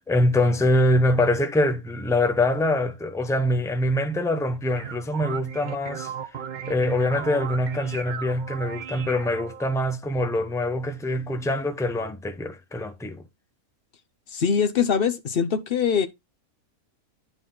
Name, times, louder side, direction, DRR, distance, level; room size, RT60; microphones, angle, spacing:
voice 1, 0.1-6.1 6.7-13.2, left 1 dB, 5° left, 0.4 m, -24 dB
sound 1, 4.5-9.7, right 8 dB, 45° right, 0.7 m, -36 dB
voice 2, 14.3-16.1, left 7 dB, 45° left, 0.9 m, -23 dB
9.7 x 4.1 x 3.8 m
omnidirectional pair, 1.6 m